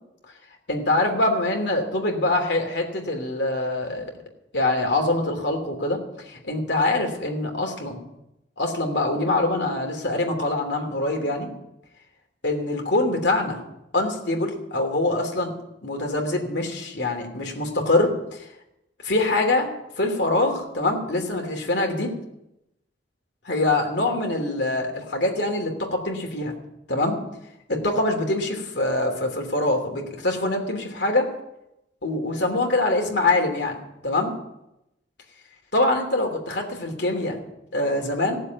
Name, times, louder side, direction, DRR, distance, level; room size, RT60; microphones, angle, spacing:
voice 1, 0.7-4.1 4.5-8.0 8.6-11.5 12.4-13.6 13.9-15.5 15.8-18.5 19.0-22.1 23.4-26.5 26.9-27.2 27.7-31.3 32.0-33.8 34.0-34.3 35.7-37.4 37.7-38.4, left 2 dB, 65° left, 2 dB, 2.9 m, -24 dB
16.5 x 7.5 x 9.3 m, 0.88 s
head